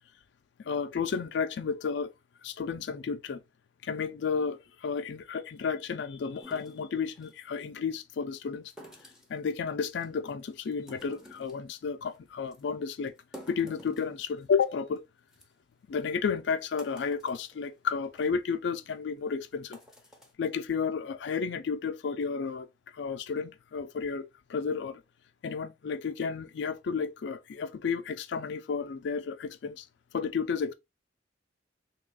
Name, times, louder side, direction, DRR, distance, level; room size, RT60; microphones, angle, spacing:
voice 1, 0.6-2.1 2.4-3.4 3.8-8.7 9.3-13.1 13.5-15.0 15.9-19.8 20.4-22.7 22.9-25.0 25.4-29.9 30.1-30.7, left 6 dB, 65° left, 0.4 m, -32 dB
sound 1, 6.4-7.4 8.7-9.4 9.9-10.3 10.7-11.6 12.0-12.2 12.5-12.6 13.1-14.6 15.0-15.1 15.3-15.4 16.1-16.2 16.6-17.6 18.0-18.3 18.8-18.9 19.5-20.3, equal, 5° right, 0.8 m, -51 dB
3.3 x 2.4 x 3.6 m
head